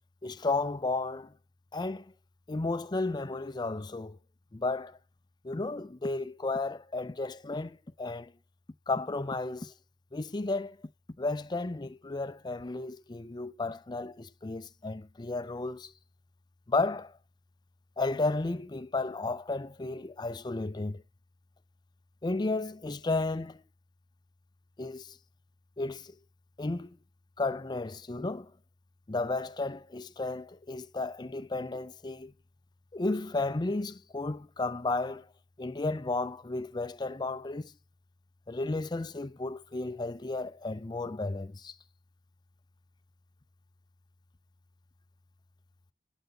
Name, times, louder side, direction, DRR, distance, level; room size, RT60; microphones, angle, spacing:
voice 1, 0.2-1.3 1.7-2.0 2.5-4.2 4.5-5.0 5.4-8.3 8.9-9.7 10.1-10.8 11.2-15.9 16.7-17.2 18.0-21.0 22.2-23.6 24.8-25.2 25.8-26.1 26.6-27.0 27.4-28.5 29.1-32.3 32.9-35.3 35.6-37.7 38.5-41.7, left 3 dB, 25° left, 0.5 m, -33 dB
12.0 x 8.0 x 3.8 m
head